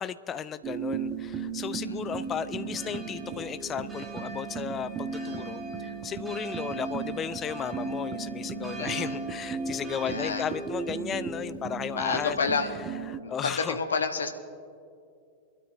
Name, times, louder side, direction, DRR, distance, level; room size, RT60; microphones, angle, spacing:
voice 1, 0.0-12.4 13.1-13.8, left 8 dB, 25° left, 14 dB, 0.4 m, -35 dB
sound 1, 0.6-13.2, right 5 dB, 30° right, 0.9 m, -36 dB
sound 2, 2.1-11.0, right 3 dB, 10° right, 1.7 m, -43 dB
voice 2, 8.8-9.2 10.0-10.5 11.9-12.7 13.2-14.3, left 5 dB, 70° left, 6 dB, 1.0 m, -29 dB
25.0 x 12.5 x 2.5 m, 2.4 s
figure-of-eight pair, 90°, 0 cm